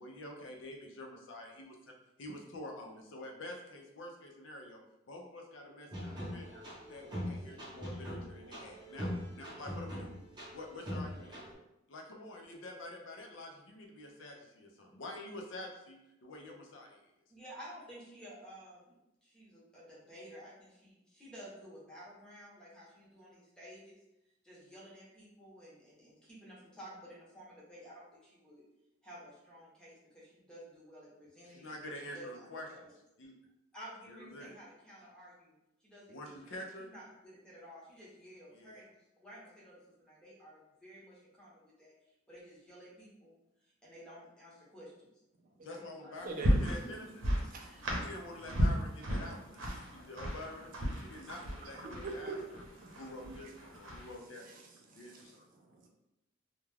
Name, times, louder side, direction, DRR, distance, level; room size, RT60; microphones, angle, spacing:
voice 1, 0.0-1.9 2.2-4.8 5.1-6.6 6.9-10.1 10.5-11.4 11.9-17.1 31.4-32.7 33.2-33.3 34.1-34.6 36.1-36.9 38.5-38.8 45.6-47.1 48.0-52.6 52.9-53.5 53.7-54.7 55.0-55.5, left 1 dB, 70° left, 1 dB, 0.5 m, -47 dB
sound 1, 5.9-11.5, equal, 25° right, 0.8 m, -42 dB
voice 2, 17.3-24.0 24.4-28.6 29.0-32.9 33.7-35.6 35.8-36.2 36.4-36.6 36.9-38.9 39.2-41.9 42.3-43.3 43.8-45.1 45.7-46.2 47.6-47.9, equal, 5° left, -7 dB, 0.8 m, -53 dB
voice 3, 46.2-46.6 47.5-48.1 49.6-50.1 51.1-51.3 51.8-52.3 52.8-53.5 53.9-54.1 54.4-54.6 54.9-55.9, right 3 dB, 45° right, 1 dB, 0.4 m, -46 dB
sound 2, 46.2-54.2, equal, 90° right, 0.7 m, -35 dB
2.3 x 2.2 x 3.2 m, 0.89 s
head